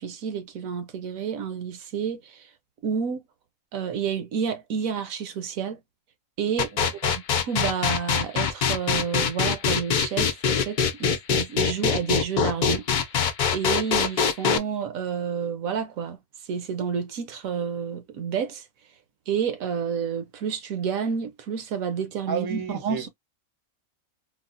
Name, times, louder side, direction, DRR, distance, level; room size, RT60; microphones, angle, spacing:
voice 1, 0.0-2.4 2.8-3.2 3.7-5.8 6.4-6.7 7.4-12.9 13.5-16.2 16.5-18.7 19.3-23.1, right 7 dB, 75° right, 1.1 m, -29 dB
sound 1, 6.6-14.6, left 7 dB, 85° left, 0.4 m, -23 dB
voice 2, 6.7-7.1 22.3-23.1, right 6 dB, 25° right, 0.5 m, -32 dB
4.0 x 2.1 x 2.5 m
omnidirectional pair, 1.5 m